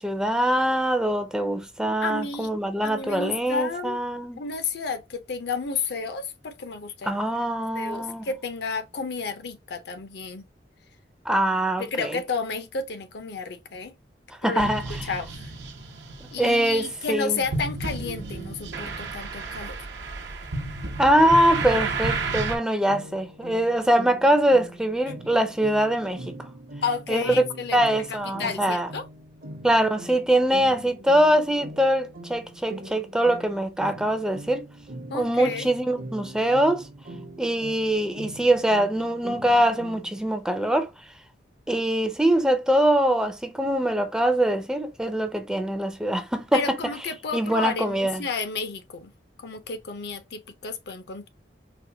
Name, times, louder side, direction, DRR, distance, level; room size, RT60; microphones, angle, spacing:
voice 1, 0.0-4.4 7.0-8.3 11.3-12.2 14.4-14.8 16.4-17.4 21.0-26.3 27.1-27.2 27.7-28.9 29.6-34.6 35.1-36.9 37.4-40.9 41.7-46.8 47.3-48.2, right 1 dB, 5° right, 0.4 m, -23 dB
voice 2, 2.0-2.5 2.8-4.0 4.4-7.2 7.7-10.5 11.8-13.9 14.4-14.6 14.9-15.5 16.3-19.8 26.8-27.8 28.2-29.0 33.8-33.9 35.1-35.7 46.5-49.1 49.4-51.3, left 4 dB, 65° left, 0.6 m, -32 dB
sound 1, 14.6-22.6, right 3 dB, 90° right, 0.8 m, -32 dB
sound 2, 22.9-40.3, right 1 dB, 55° right, 0.7 m, -42 dB
4.2 x 2.1 x 2.7 m
head